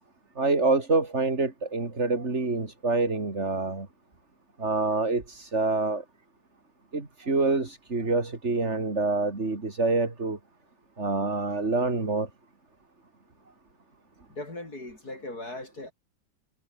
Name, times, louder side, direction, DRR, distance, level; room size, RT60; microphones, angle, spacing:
voice 1, 0.4-3.9 4.6-6.0 6.9-10.4 11.0-12.3, right 3 dB, 40° right, 3.5 m, -26 dB
voice 2, 14.3-15.9, left 2 dB, 60° left, 7.3 m, -38 dB
omnidirectional pair, 1.8 m